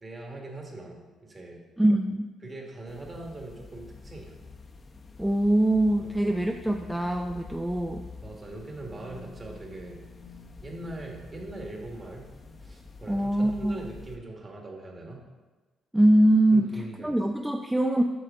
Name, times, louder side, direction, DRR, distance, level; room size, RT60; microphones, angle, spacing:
voice 1, 0.0-1.6 2.4-4.4 6.0-6.4 8.2-10.0 10.6-12.3 12.6-15.2 16.5-17.1, right 2 dB, 30° right, 0 dB, 1.7 m, -41 dB
voice 2, 1.8-2.3 5.2-8.1 13.1-13.8 15.9-18.0, right 1 dB, 5° right, 3 dB, 0.4 m, -23 dB
sound 1, 2.9-14.2, left 3 dB, 35° left, 0.8 m, -47 dB
7.9 x 6.6 x 3.7 m, 1.2 s
cardioid pair, 90°, 0 cm